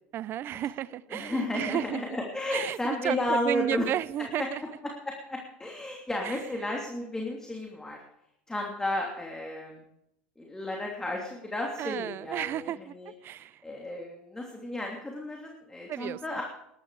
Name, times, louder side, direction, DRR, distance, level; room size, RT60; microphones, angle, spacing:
voice 1, 0.1-2.0 2.5-4.6 6.2-6.4 11.8-12.9 13.2-13.6 15.9-16.2, right 12 dB, 50° right, 18 dB, 0.7 m, -33 dB
voice 2, 1.1-3.9 4.4-4.5 5.0-8.0 8.5-9.8 10.4-16.4, left 1 dB, 10° left, -1 dB, 3.0 m, -33 dB
20.0 x 11.5 x 4.9 m, 0.80 s
supercardioid pair, 90°, 5 cm